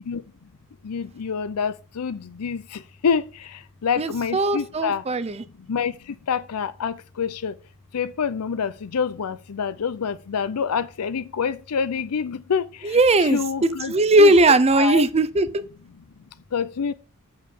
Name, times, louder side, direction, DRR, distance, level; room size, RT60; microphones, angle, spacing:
voice 1, 0.9-2.6 3.0-3.2 3.8-5.0 5.7-5.9 6.3-7.5 7.9-12.6 13.2-13.9 14.2-15.0 16.5-16.9, left 6 dB, 85° left, 0.5 m, -26 dB
voice 2, 4.0-5.4 12.8-13.4 13.9-15.5, right 2 dB, 30° right, 0.6 m, -18 dB
6.9 x 5.6 x 6.9 m
head